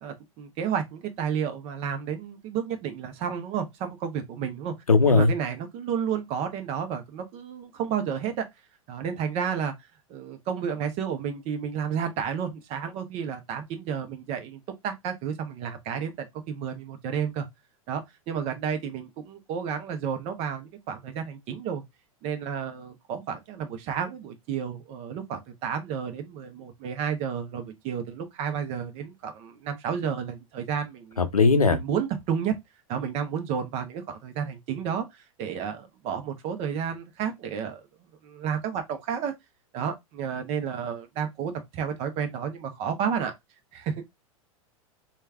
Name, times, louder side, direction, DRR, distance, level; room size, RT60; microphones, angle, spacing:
voice 1, 0.0-4.7 5.1-8.4 8.9-9.7 10.1-17.5 17.9-18.0 18.3-21.8 22.2-31.3 31.7-32.5 32.9-37.8 38.2-39.3 39.7-43.3 43.7-43.9, right 7 dB, 35° right, 0.8 m, -31 dB
voice 2, 4.9-5.3 31.2-31.8, left 4 dB, 85° left, 0.6 m, -18 dB
3.3 x 2.3 x 3.3 m
figure-of-eight pair, 95°, 18 cm